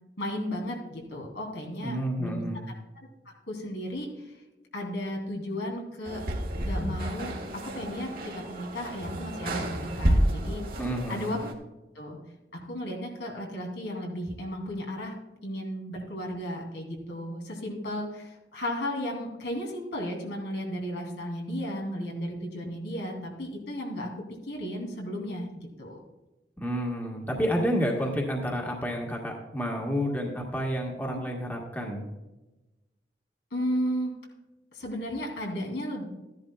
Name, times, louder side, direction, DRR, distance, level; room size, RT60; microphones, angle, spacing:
voice 1, 0.2-2.7 3.5-4.3 4.7-6.2 6.6-10.6 11.1-11.4 11.9-12.2 12.5-15.2 15.4-26.0 33.5-34.1 34.7-36.1, equal, 85° left, 0 dB, 2.8 m, -34 dB
voice 2, 1.8-2.7 10.8-11.3 26.6-32.0, equal, 10° left, -1 dB, 1.4 m, -30 dB
sound 1, 6.0-11.5, right 1 dB, 50° right, 1.5 m, -30 dB
14.0 x 10.5 x 2.3 m, 1.1 s
head